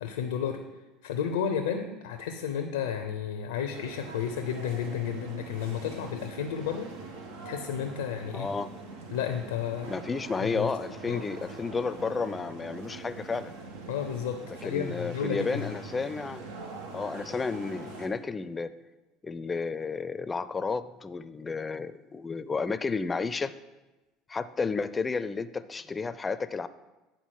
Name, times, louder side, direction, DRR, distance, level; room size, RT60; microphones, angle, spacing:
voice 1, 0.0-0.6 1.0-6.9 7.4-8.5 9.1-10.0 10.4-10.7 11.1-11.2 13.9-15.7, left 8 dB, 90° left, 6 dB, 0.5 m, -32 dB
sound 1, 3.7-18.1, right 3 dB, 85° right, 1.3 m, -43 dB
voice 2, 8.3-8.7 9.9-13.5 14.6-16.4 16.9-18.7 19.2-23.5 24.3-26.7, left 4 dB, 25° left, 14 dB, 0.5 m, -32 dB
9.1 x 3.9 x 6.3 m, 1.1 s
hypercardioid pair, 85°, 0 cm